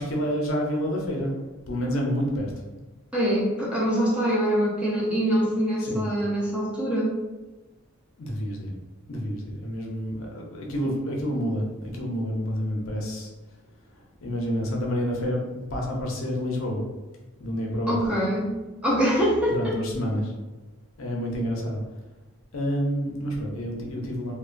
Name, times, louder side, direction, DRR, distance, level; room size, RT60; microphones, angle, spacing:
voice 1, 0.0-1.3 1.7-2.5 5.8-6.1 8.2-8.7 9.1-13.3 13.9-16.8 17.4-18.0 19.5-20.3 21.0-21.8 22.5-24.3, equal, 65° left, -1 dB, 0.6 m, -28 dB
voice 2, 3.1-7.1 17.9-18.5 18.8-19.7, equal, 5° right, -6 dB, 0.5 m, -24 dB
2.9 x 2.2 x 2.4 m, 1.2 s
head